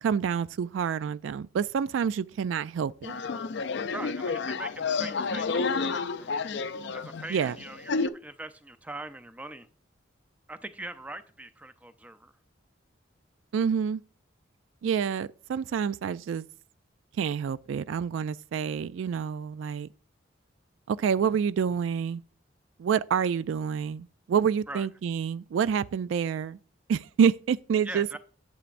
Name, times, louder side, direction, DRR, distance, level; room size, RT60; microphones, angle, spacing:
voice 1, 0.0-3.2 7.3-7.5 13.5-14.0 14.8-16.4 17.2-19.9 20.9-22.2 22.8-26.6 26.9-28.2, right 7 dB, 80° right, 0.3 m, -28 dB
sound 1, 3.0-8.1, left 4 dB, 60° left, 0.4 m, -30 dB
voice 2, 3.9-6.5 6.9-9.7 10.5-12.3 24.7-24.9 27.8-28.2, right 2 dB, 10° right, 0.5 m, -42 dB
10.0 x 7.9 x 2.5 m
head